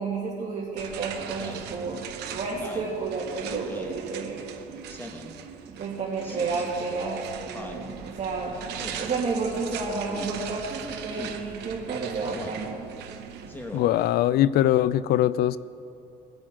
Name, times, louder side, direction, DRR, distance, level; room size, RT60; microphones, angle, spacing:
voice 1, 0.0-4.4 5.7-12.8, right 4 dB, 40° right, -5 dB, 2.3 m, -31 dB
sound 1, 0.8-14.3, right 8 dB, 80° right, 1.0 m, -40 dB
Speech synthesizer, 1.4-1.7 2.5-2.9 3.7-4.0 4.9-5.3 6.2-6.6 7.5-7.8 8.8-9.1 10.0-10.3 11.1-11.4 12.3-12.6 13.5-13.8, left 1 dB, 10° left, 1.3 m, -40 dB
voice 2, 13.7-15.6, left 12 dB, 70° left, 18 dB, 0.4 m, -21 dB
22.0 x 8.7 x 3.8 m, 2.7 s
cardioid pair, 110°, 17 cm